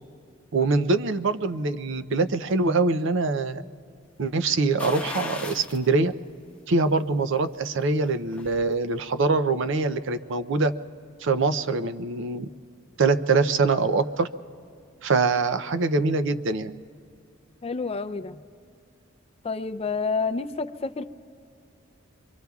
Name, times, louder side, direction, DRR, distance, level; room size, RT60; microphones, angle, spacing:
voice 1, 0.5-3.6 4.2-6.1 6.7-10.7 11.2-12.5 13.0-14.3 15.0-16.7, right 3 dB, 65° right, 11 dB, 0.5 m, -24 dB
sound 1, 4.8-5.9 6.3-6.4 7.9-8.7 9.0-9.1, left 2 dB, 5° left, 0.8 m, -36 dB
voice 2, 17.6-18.4 19.4-21.1, left 4 dB, 30° left, 10 dB, 0.4 m, -29 dB
26.0 x 23.5 x 2.3 m, 2.5 s
head